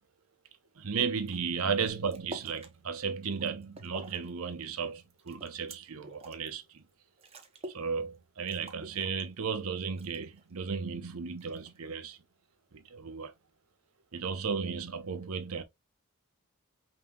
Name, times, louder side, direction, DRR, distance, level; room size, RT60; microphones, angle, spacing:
voice 1, 0.8-6.8 7.6-12.2 12.7-13.3 14.1-15.6, right 5 dB, 80° right, 0.7 m, -34 dB
sound 1, 1.2-1.4 1.7-2.7 3.2-4.3 4.6-6.5 6.9-7.0 7.2-7.9 8.1-8.2 8.5-9.6 10.0-10.5 11.4-11.9, right 1 dB, 25° right, 0.7 m, -47 dB
5.5 x 2.8 x 2.2 m
head